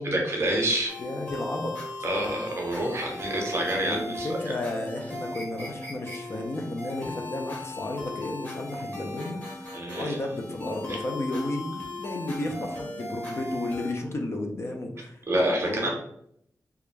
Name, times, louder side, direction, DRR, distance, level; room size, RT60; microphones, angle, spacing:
voice 1, 0.0-0.9 2.0-4.3 9.7-10.2 10.9-11.0 15.3-15.9, right 1 dB, 40° right, 0 dB, 0.7 m, -27 dB
sound 1, 0.9-13.9, left 2 dB, 25° left, 0.8 m, -38 dB
voice 2, 1.0-1.8 3.8-15.2 15.6-15.9, left 1 dB, 40° left, 3 dB, 0.4 m, -33 dB
2.3 x 2.0 x 3.1 m, 0.71 s
wide cardioid pair, 135°, 7 cm